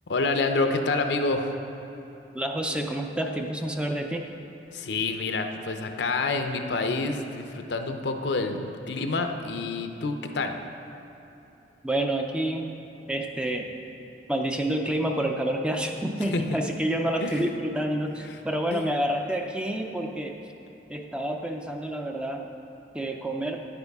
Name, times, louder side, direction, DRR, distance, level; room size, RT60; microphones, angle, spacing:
voice 1, 0.1-1.5 4.7-10.5 16.3-16.4 17.2-17.5 18.7-18.9, left 3 dB, 75° left, 6 dB, 0.6 m, -28 dB
voice 2, 2.3-4.3 11.8-12.7 13.1-13.7 14.3-20.4 20.9-22.5 22.9-23.7, right 1 dB, 5° right, 3 dB, 0.4 m, -28 dB
9.7 x 9.4 x 3.6 m, 3.0 s
head